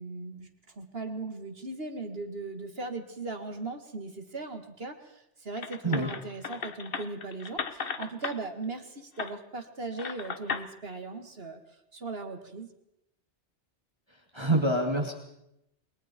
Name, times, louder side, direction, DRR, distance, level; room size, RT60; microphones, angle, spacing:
voice 1, 0.0-11.6 11.9-12.7, right 3 dB, 55° right, 6 dB, 2.2 m, -38 dB
sound 1, 5.6-8.4 9.2-9.3 10.0-10.7, left 5 dB, 55° left, 1.2 m, -36 dB
voice 2, 14.3-15.1, right 1 dB, 25° right, 1 dB, 2.5 m, -26 dB
29.0 x 22.5 x 4.5 m, 0.82 s
omnidirectional pair, 1.2 m